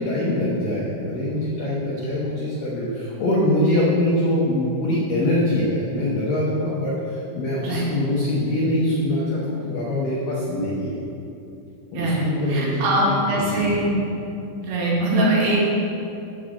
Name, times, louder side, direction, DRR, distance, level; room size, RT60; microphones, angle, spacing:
voice 1, 0.0-10.9 11.9-12.8 13.1-13.6, left 1 dB, 85° left, -6 dB, 1.9 m, -23 dB
voice 2, 11.9-13.9 14.6-15.6, right 1 dB, 75° right, -6 dB, 4.5 m, -22 dB
8.9 x 5.0 x 7.6 m, 2.8 s
omnidirectional pair, 5.9 m